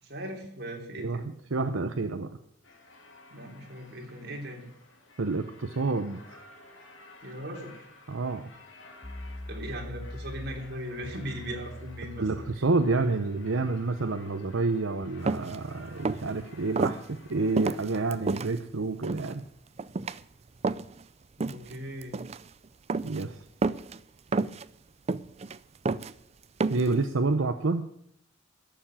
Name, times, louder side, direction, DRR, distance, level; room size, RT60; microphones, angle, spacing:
voice 1, 0.0-1.3 3.3-4.7 7.2-7.8 9.5-12.3 12.6-12.7 21.4-22.2, equal, 55° right, 1 dB, 3.3 m, -39 dB
voice 2, 1.5-2.3 5.2-6.4 8.1-8.4 12.2-19.5 23.0-23.4 26.7-27.9, right 3 dB, 85° right, 7 dB, 0.8 m, -29 dB
sound 1, 2.6-18.1, left 2 dB, 80° left, 2.7 m, -54 dB
sound 2, 9.0-16.5, left 1 dB, 25° left, 0.8 m, -44 dB
sound 3, 15.3-15.6 16.0-16.3 16.8-17.0 17.6-18.5 19.0-19.3 19.8-20.2 20.6-21.0 21.4-21.8 22.0-22.4 22.9-23.2 23.6-24.0 24.3-24.7 25.1-25.6 25.9-26.1 26.6-26.9, right 3 dB, 30° right, 0.4 m, -29 dB
13.0 x 7.1 x 10.0 m, 0.73 s
head